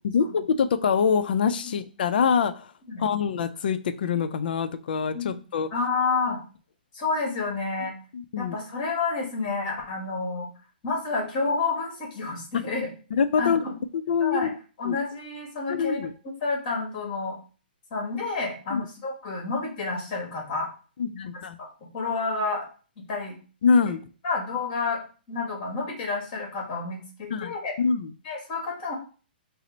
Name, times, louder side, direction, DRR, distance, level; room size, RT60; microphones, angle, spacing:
voice 1, 0.1-2.7 3.0-5.7 8.1-8.6 13.1-13.6 13.9-14.5 14.8-15.0 15.7-16.1 18.7-18.8 21.0-21.6 23.6-24.0 27.3-28.1, left 6 dB, 60° left, 11 dB, 0.4 m, -24 dB
voice 2, 5.7-6.4 6.9-7.9 8.4-10.5 10.8-12.9 13.4-13.7 14.2-14.5 14.8-16.0 16.4-17.4 17.9-20.7 21.6-21.7 21.9-22.6 23.1-23.4 24.2-25.0 25.3-27.7 28.2-28.9, left 4 dB, 35° left, 0 dB, 1.5 m, -29 dB
4.2 x 2.0 x 3.8 m, 0.37 s
hypercardioid pair, 155°, 5 cm